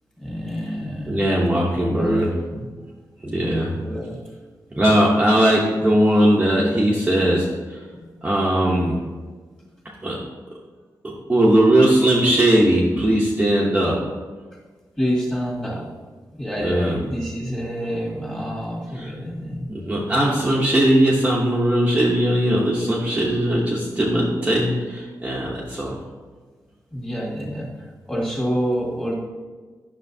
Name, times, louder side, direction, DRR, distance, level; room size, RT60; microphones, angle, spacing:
voice 1, 0.2-2.7 3.4-4.2 4.7-5.2 7.9-8.1 15.0-15.9 16.3-19.7 22.5-22.6 23.0-23.2 26.9-29.1, equal, 10° left, -5 dB, 1.9 m, -28 dB
voice 2, 1.1-2.3 3.3-3.7 4.7-7.5 8.2-9.0 10.0-10.2 11.0-14.0 16.6-17.0 19.0-19.1 19.7-25.9, right 1 dB, 20° right, -5 dB, 0.8 m, -19 dB
9.8 x 6.3 x 2.7 m, 1.4 s
wide cardioid pair, 165°, 7 cm